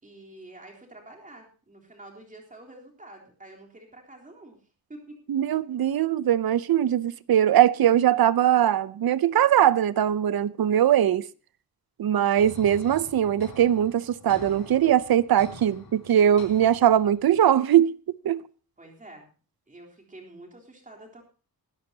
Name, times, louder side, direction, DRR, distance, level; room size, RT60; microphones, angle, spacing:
voice 1, 0.0-4.6 4.9-5.2 18.8-19.3 19.7-21.2, right 1 dB, 20° right, 3.6 m, -47 dB
voice 2, 5.3-11.2 12.0-17.9 18.2-18.4, right 10 dB, 70° right, 0.7 m, -21 dB
sound 1, 12.4-17.4, left 3 dB, 75° left, 4.6 m, -46 dB
21.5 x 13.0 x 2.9 m
wide cardioid pair, 165°, 38 cm